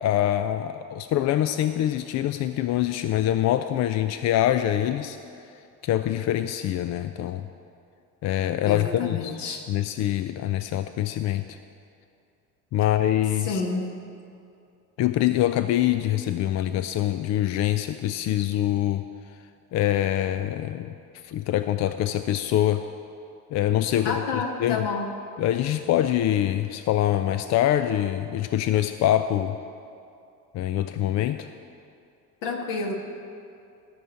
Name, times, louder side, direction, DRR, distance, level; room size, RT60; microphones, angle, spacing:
voice 1, 0.0-5.2 5.8-7.5 8.2-9.4 9.7-11.6 12.7-13.6 15.0-19.0 19.7-20.9 21.2-22.8 23.5-24.2 24.6-24.9 25.4-29.6 30.5-31.5, left 12 dB, 35° left, 10 dB, 0.5 m, -24 dB
voice 2, 8.7-9.7 13.4-13.9 24.0-25.1 32.4-33.0, left 4 dB, 60° left, 2 dB, 1.8 m, -29 dB
14.5 x 6.4 x 7.1 m, 2.5 s
figure-of-eight pair, 60°, 46 cm